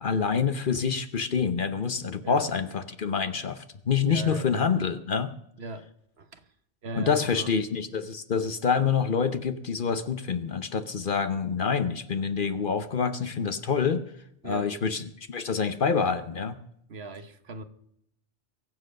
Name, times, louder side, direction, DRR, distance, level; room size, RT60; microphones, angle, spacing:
voice 1, 0.0-5.3 6.9-14.0 14.4-16.6, left 6 dB, 50° left, 11 dB, 0.9 m, -27 dB
voice 2, 4.1-4.5 5.6-5.9 6.2-6.5 6.8-7.5 14.4-14.7 16.9-17.6, right 2 dB, 60° right, 10 dB, 1.3 m, -38 dB
22.5 x 7.6 x 6.5 m, 0.73 s
omnidirectional pair, 1.2 m